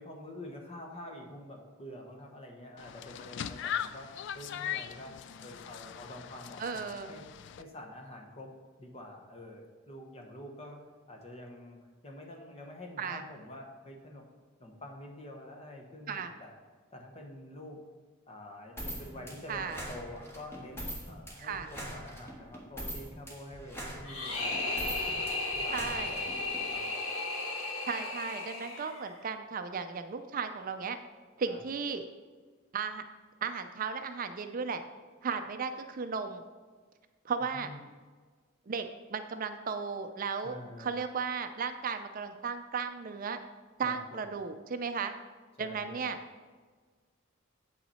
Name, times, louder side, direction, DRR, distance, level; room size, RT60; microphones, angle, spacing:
voice 1, 0.0-5.1 5.4-7.3 7.6-8.5 8.8-10.8 11.1-11.8 12.0-14.2 14.6-16.6 16.9-17.8 18.3-24.8 25.2-25.4 25.6-27.0 31.5-31.6 37.4-37.8 40.4-40.9 43.8-44.2 45.6-46.1, left 1 dB, 30° left, 2 dB, 1.0 m, -47 dB
sound 1, 2.8-7.6, left 9 dB, 60° left, 0.3 m, -40 dB
voice 2, 6.6-7.1 13.0-13.2 16.1-16.3 19.5-19.8 21.4-21.7 25.7-26.1 27.9-31.0 31.4-32.0 32.7-33.0 33.4-34.8 35.2-36.4 37.2-37.7 38.7-43.4 43.8-45.1 45.6-46.2, right 5 dB, 45° right, 8 dB, 0.4 m, -35 dB
sound 2, 18.8-26.6, equal, 10° left, 1.5 m, -42 dB
sound 3, 24.0-29.2, left 2 dB, 90° left, 1.4 m, -35 dB
8.5 x 5.7 x 4.2 m, 1.5 s
head